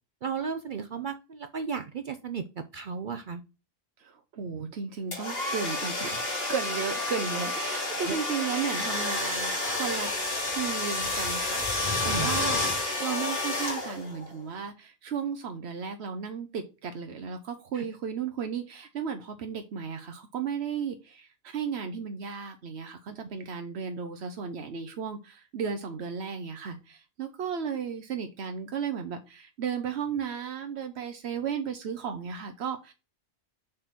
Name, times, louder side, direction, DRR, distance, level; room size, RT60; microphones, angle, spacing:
voice 1, 0.2-3.4 8.1-8.2 12.1-12.3 17.7-17.8, right 6 dB, 55° right, 9 dB, 0.7 m, -34 dB
voice 2, 4.0-10.1 10.4-11.7 12.0-32.9, right 6 dB, 80° right, 6 dB, 1.0 m, -34 dB
sound 1, 5.1-14.2, left 2 dB, 65° left, 2.8 m, -30 dB
6.5 x 3.9 x 5.9 m, 0.30 s
omnidirectional pair, 1.1 m